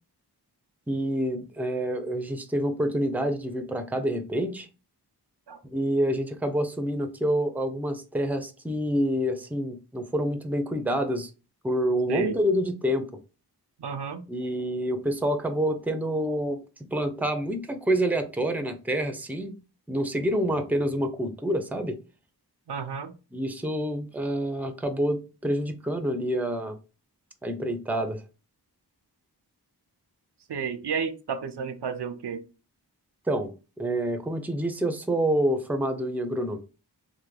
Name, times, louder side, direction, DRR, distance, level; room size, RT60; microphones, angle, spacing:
voice 1, 0.9-4.7 5.7-11.3 11.6-13.1 14.3-16.6 16.9-19.5 19.9-22.0 23.3-26.8 27.4-28.2 33.3-36.6, equal, 5° right, 0.5 m, -27 dB
voice 2, 13.8-14.2 22.7-23.1 30.5-32.4, right 6 dB, 85° right, 0.6 m, -31 dB
3.4 x 2.1 x 3.2 m
wide cardioid pair, 50°, 39 cm